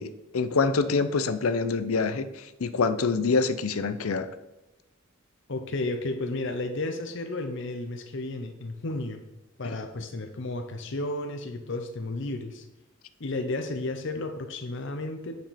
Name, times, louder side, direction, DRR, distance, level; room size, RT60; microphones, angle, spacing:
voice 1, 0.0-4.3 9.6-9.8, left 4 dB, 85° left, 12 dB, 0.6 m, -26 dB
voice 2, 5.5-9.2 9.6-12.7 13.2-15.4, left 2 dB, 60° left, 6 dB, 0.8 m, -33 dB
9.1 x 5.3 x 4.2 m, 1.0 s
head